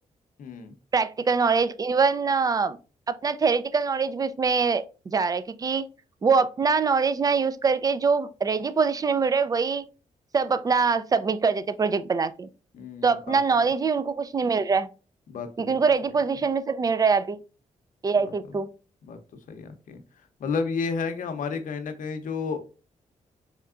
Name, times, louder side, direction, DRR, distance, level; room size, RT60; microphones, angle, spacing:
voice 1, 0.4-0.7 12.7-13.4 15.3-15.8 18.2-18.3 19.1-19.2 19.5-20.0 20.4-22.6, left 5 dB, 75° left, 0.7 m, -31 dB
voice 2, 0.9-2.8 3.1-5.9 6.2-9.8 10.3-12.5 13.0-14.9 15.6-17.4 18.0-18.7, right 5 dB, 25° right, 0.4 m, -24 dB
4.2 x 3.4 x 2.4 m
cardioid pair, 95°, 14 cm